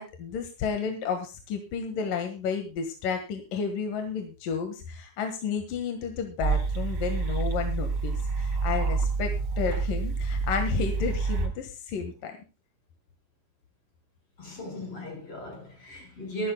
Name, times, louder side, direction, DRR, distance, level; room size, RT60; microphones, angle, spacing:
voice 1, 0.0-12.4, left 6 dB, 65° left, 3.1 m, -32 dB
sound 1, 6.4-11.5, right 4 dB, 35° right, 2.3 m, -28 dB
voice 2, 14.4-16.5, right 1 dB, 35° left, 6.5 m, -37 dB
22.5 x 11.5 x 2.2 m
omnidirectional pair, 4.3 m